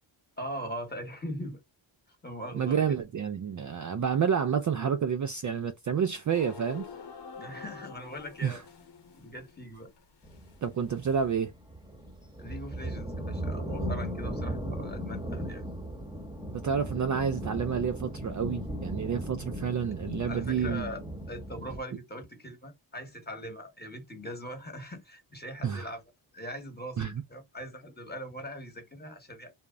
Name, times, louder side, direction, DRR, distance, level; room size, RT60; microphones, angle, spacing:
voice 1, 0.4-1.6 2.1-3.0 7.4-8.6 9.1-9.9 12.4-15.6 20.3-21.0 21.3-26.0 26.3-29.5, equal, 20° left, 1.3 m, -41 dB
voice 2, 2.5-6.9 8.4-8.6 10.6-11.5 16.5-20.9 25.6-25.9 27.0-27.2, right 7 dB, 40° right, 0.4 m, -29 dB
sound 1, 6.3-11.4, left 6 dB, 55° left, 0.9 m, -47 dB
sound 2, 10.2-21.8, equal, 10° right, 1.0 m, -37 dB
2.1 x 2.0 x 3.6 m
cardioid pair, 55°, 50 cm